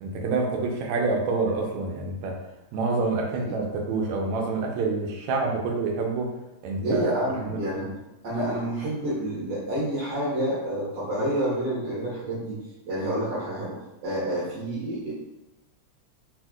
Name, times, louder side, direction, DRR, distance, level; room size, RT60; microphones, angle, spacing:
voice 1, 0.0-2.3 2.7-6.3 6.6-7.8, right 3 dB, 80° right, 1 dB, 1.9 m, -27 dB
voice 2, 6.8-7.9 8.2-12.6 12.9-15.1, right 1 dB, 60° right, -10 dB, 2.2 m, -28 dB
4.4 x 4.2 x 2.4 m, 0.96 s
omnidirectional pair, 3.3 m